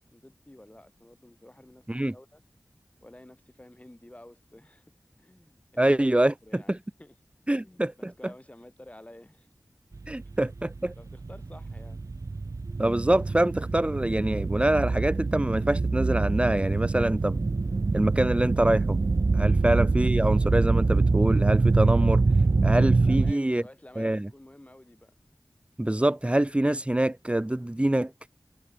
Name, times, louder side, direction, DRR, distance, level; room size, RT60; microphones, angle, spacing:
voice 1, 0.0-2.4 3.0-4.9 5.2-7.2 7.5-9.5 10.3-10.4 11.0-12.0 23.0-25.1, left 1 dB, 20° left, 7.0 m, -51 dB
voice 2, 5.8-6.6 7.5-8.1 10.1-10.9 12.8-17.4 17.9-19.0 19.3-22.2 22.6-23.6 24.0-24.3 25.8-28.1, right 1 dB, 20° right, 0.9 m, -25 dB
sound 1, 9.9-23.3, right 3 dB, 55° right, 1.0 m, -25 dB
wide cardioid pair, 60°, 7 cm